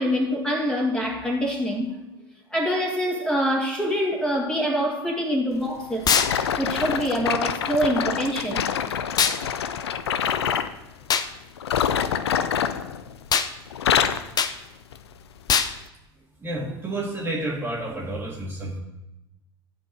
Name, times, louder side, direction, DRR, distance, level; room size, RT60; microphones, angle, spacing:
voice 1, 0.0-1.9 2.5-6.1 6.6-8.6, equal, 5° left, 2.2 m, -25 dB
sound 1, 6.1-10.7 11.6-13.4 13.7-14.3 14.9-15.1 15.8-15.9, left 8 dB, 80° left, 0.5 m, -26 dB
sound 2, 6.1-6.3 9.2-9.4 11.1-11.3 13.3-13.5 14.4-14.6 15.5-15.7, left 7 dB, 30° left, 0.6 m, -21 dB
voice 2, 16.4-18.8, right 1 dB, 15° right, 1.9 m, -30 dB
13.0 x 4.5 x 5.2 m
hypercardioid pair, 80°, 14 cm